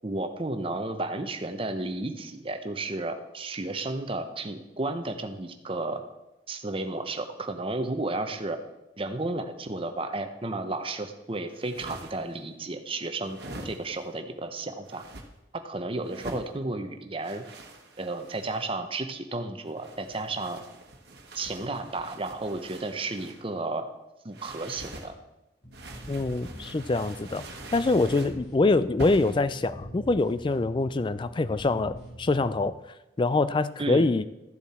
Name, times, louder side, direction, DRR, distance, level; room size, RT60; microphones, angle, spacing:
voice 1, 0.0-6.0 6.5-8.6 9.0-13.4 13.6-15.0 15.5-17.4 18.0-20.6 21.3-23.9 24.2-25.2 33.8-34.1, right 2 dB, 30° right, 7 dB, 0.8 m, -33 dB
sound 1, 11.5-12.4 13.2-14.1 14.8-15.3 16.0-16.5 17.2-18.7 19.7-23.4 24.3-25.1 25.7-28.4 29.0-29.4, right 1 dB, 60° right, 1.3 m, -44 dB
sound 2, 25.6-32.7, equal, 55° left, 3.6 m, -44 dB
voice 2, 26.1-27.5 27.7-32.7 33.2-34.2, left 3 dB, 25° left, 14 dB, 0.4 m, -25 dB
13.5 x 7.2 x 4.3 m, 0.99 s
head